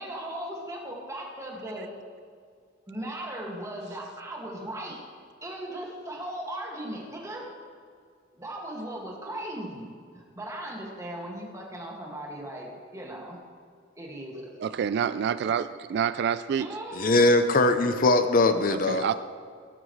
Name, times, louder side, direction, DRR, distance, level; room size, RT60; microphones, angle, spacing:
voice 1, 0.0-1.9 2.9-5.0 5.4-7.5 8.4-13.4 14.0-14.6 16.6-17.2, right 1 dB, 15° right, -2 dB, 2.1 m, -38 dB
voice 2, 14.6-16.7 18.7-19.1, right 8 dB, 60° right, 13 dB, 0.3 m, -27 dB
voice 3, 16.9-19.1, left 2 dB, 50° left, 8 dB, 0.7 m, -21 dB
17.5 x 12.0 x 3.2 m, 2.1 s
head